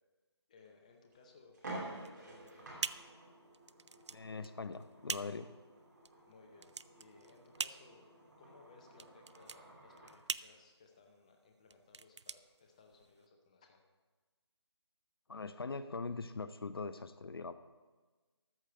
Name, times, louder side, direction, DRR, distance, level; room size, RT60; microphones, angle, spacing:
voice 1, 0.5-2.9 6.3-8.1 8.4-13.8, left 4 dB, 15° left, 3 dB, 0.7 m, -62 dB
sound 1, 0.6-0.7 1.1-1.2 1.5-10.2, right 2 dB, 40° right, 2.7 m, -51 dB
sound 2, 2.0-13.3, right 4 dB, 80° right, 0.4 m, -45 dB
voice 2, 4.1-5.5 15.3-17.5, left 4 dB, 55° left, 12 dB, 0.6 m, -42 dB
13.5 x 4.8 x 7.8 m, 1.3 s
figure-of-eight pair, 165°, 15 cm